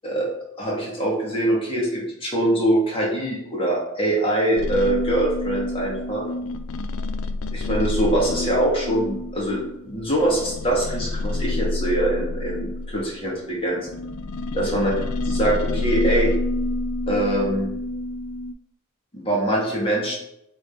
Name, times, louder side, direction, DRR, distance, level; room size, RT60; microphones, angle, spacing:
voice 1, 0.6-6.2 7.5-13.9 14.5-14.9 15.2-16.3 17.1-17.7 19.1-20.2, right 1 dB, 25° left, -4 dB, 2.0 m, -23 dB
sound 1, 4.6-13.3 13.9-18.5, left 2 dB, 80° left, 0.4 m, -28 dB
7.7 x 3.9 x 3.9 m, 0.82 s
head